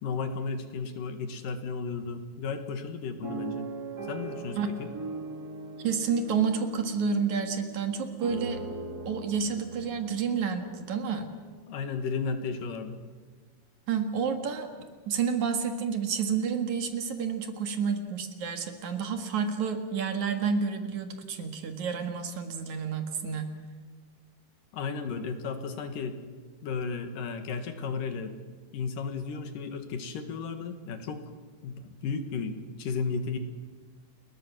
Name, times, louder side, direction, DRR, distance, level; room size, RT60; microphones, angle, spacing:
voice 1, 0.0-3.7 4.1-4.9 11.7-13.0 24.7-26.2 26.6-28.4 28.7-31.2 31.6-33.4, left 5 dB, 75° left, 7 dB, 3.3 m, -34 dB
sound 1, 3.2-11.3 11.9-12.0 12.3-12.6, right 3 dB, 30° right, 2.7 m, -40 dB
voice 2, 5.8-8.6 9.1-11.3 13.9-14.7 15.1-23.5, right 6 dB, 60° right, 6 dB, 2.9 m, -30 dB
29.5 x 21.5 x 6.2 m, 1.4 s
omnidirectional pair, 4.0 m